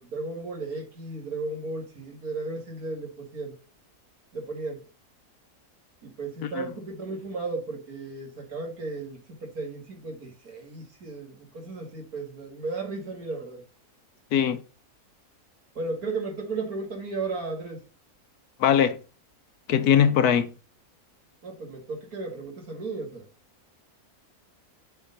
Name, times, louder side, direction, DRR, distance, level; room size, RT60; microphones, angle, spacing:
voice 1, 0.0-3.5 4.3-4.8 6.0-13.6 15.8-17.8 21.4-23.3, right 3 dB, 65° right, 2.6 m, -35 dB
voice 2, 14.3-14.6 18.6-19.0 19.7-20.5, left 8 dB, 75° left, 1.3 m, -20 dB
7.0 x 3.7 x 5.5 m
omnidirectional pair, 1.7 m